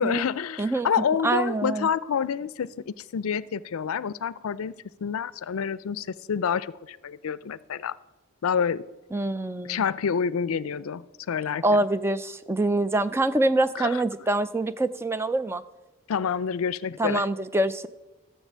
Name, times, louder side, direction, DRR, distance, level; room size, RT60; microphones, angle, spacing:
voice 1, 0.0-4.7 5.0-8.0 8.4-8.8 9.6-11.8 13.8-14.0 16.1-17.2, left 7 dB, 90° left, 19 dB, 0.4 m, -28 dB
voice 2, 1.2-1.9 9.1-9.8 11.6-15.6 17.0-17.9, right 2 dB, 10° right, 13 dB, 0.3 m, -25 dB
13.5 x 7.2 x 7.3 m, 1.1 s
head